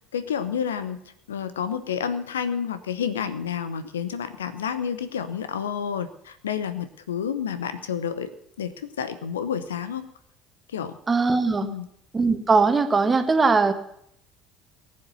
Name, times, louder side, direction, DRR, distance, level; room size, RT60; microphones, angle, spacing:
voice 1, 0.1-1.0 1.3-8.3 8.6-10.1 10.7-11.0 11.6-11.9, left 7 dB, 75° left, 12 dB, 0.8 m, -29 dB
voice 2, 11.1-11.7 12.1-13.7, right 4 dB, 25° right, 9 dB, 1.5 m, -20 dB
18.5 x 7.6 x 6.9 m, 0.72 s
figure-of-eight pair, 60°, 0 cm